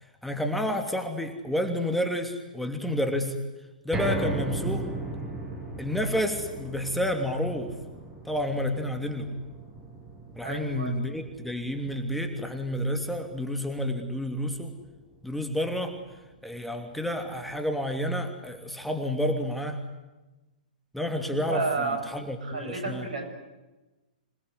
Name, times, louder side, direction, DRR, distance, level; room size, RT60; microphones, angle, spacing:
voice 1, 0.2-3.4 3.8-4.9 5.8-7.8 8.2-9.3 10.4-14.7 15.2-16.0 16.4-19.8 20.9-23.1, equal, ahead, 5 dB, 2.9 m, -30 dB
sound 1, 3.9-16.2 16.6-16.7 17.1-17.2, right 2 dB, 15° right, 7.2 m, -38 dB
voice 2, 10.4-11.0 21.2-22.0 22.5-23.3, right 3 dB, 70° right, 6 dB, 7.4 m, -31 dB
27.0 x 20.5 x 9.8 m, 1.1 s
figure-of-eight pair, 115°, 5 cm